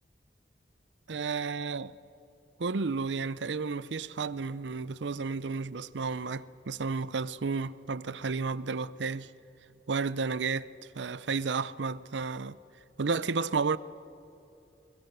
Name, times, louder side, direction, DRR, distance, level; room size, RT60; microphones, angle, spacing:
voice 1, 1.1-1.9 2.6-9.3 9.9-10.7 11.0-12.6 13.0-13.8, right 4 dB, 85° right, 0.6 m, -32 dB
22.5 x 21.0 x 8.1 m
head